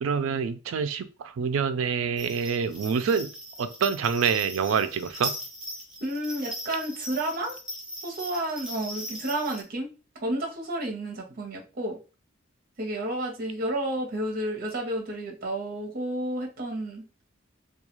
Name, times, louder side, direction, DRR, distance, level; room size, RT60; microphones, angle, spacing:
voice 1, 0.0-3.3 3.6-5.3, right 6 dB, 75° right, 10 dB, 0.4 m, -26 dB
sound 1, 2.2-9.6, right 1 dB, 5° right, 0.6 m, -39 dB
voice 2, 6.0-7.6 8.0-9.9 10.2-12.0 12.8-17.1, right 1 dB, 45° right, 0 dB, 0.8 m, -31 dB
2.3 x 2.3 x 3.0 m, 0.32 s
head